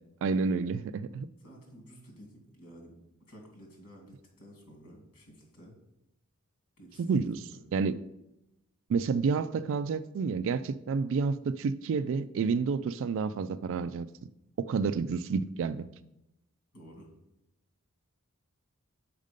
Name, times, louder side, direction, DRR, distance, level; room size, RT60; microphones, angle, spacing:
voice 1, 0.2-1.3 7.0-7.4 7.7-8.0 8.9-14.1 14.6-15.9, right 5 dB, 60° right, 14 dB, 0.3 m, -29 dB
voice 2, 1.4-3.0 3.3-5.7 6.8-7.6 16.7-17.1, equal, 75° left, 1 dB, 2.5 m, -52 dB
6.4 x 5.1 x 5.1 m, 0.87 s
head